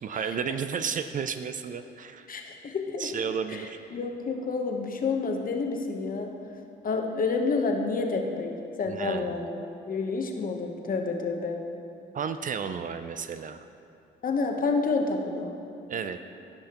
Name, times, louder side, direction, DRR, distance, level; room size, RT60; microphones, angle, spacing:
voice 1, 0.0-2.3 3.0-3.8 8.9-9.4 12.1-13.7 15.9-16.3, right 6 dB, 40° right, 10 dB, 0.4 m, -32 dB
voice 2, 2.3-3.1 3.5-6.3 6.8-8.5 8.8-11.6 14.2-15.6, left 4 dB, 45° left, 3 dB, 0.9 m, -29 dB
14.0 x 5.6 x 2.9 m, 2.6 s
cardioid pair, 90°, 20 cm